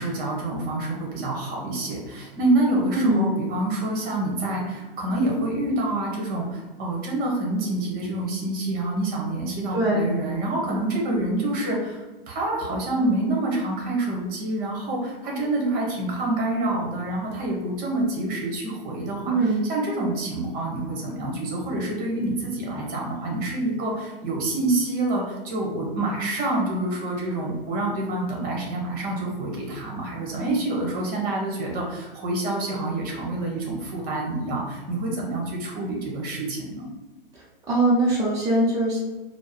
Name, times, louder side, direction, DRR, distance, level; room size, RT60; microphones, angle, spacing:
voice 1, 0.0-36.9, right 2 dB, 30° right, -1 dB, 1.2 m, -27 dB
voice 2, 2.9-3.3 9.7-10.1 19.3-19.7 37.7-39.0, right 1 dB, 10° right, -6 dB, 0.5 m, -21 dB
4.3 x 2.1 x 3.2 m, 1.2 s
figure-of-eight pair, 100°, 30 cm